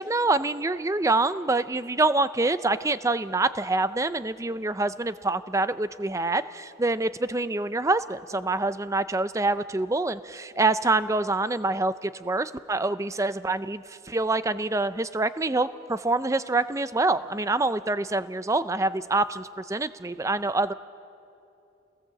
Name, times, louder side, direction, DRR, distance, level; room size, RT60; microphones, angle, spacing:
voice 1, 0.0-20.7, right 2 dB, 15° right, 13 dB, 0.5 m, -26 dB
28.5 x 18.5 x 7.6 m, 2.7 s
head